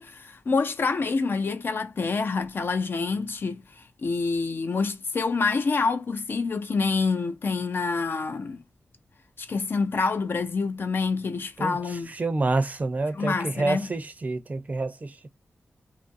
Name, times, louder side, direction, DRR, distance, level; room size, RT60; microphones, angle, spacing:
voice 1, 0.0-8.6 9.4-12.1 13.1-13.9, left 4 dB, 55° left, 0.4 m, -27 dB
voice 2, 11.6-15.3, right 3 dB, 35° right, 0.5 m, -28 dB
2.6 x 2.5 x 2.5 m
wide cardioid pair, 130°, 4 cm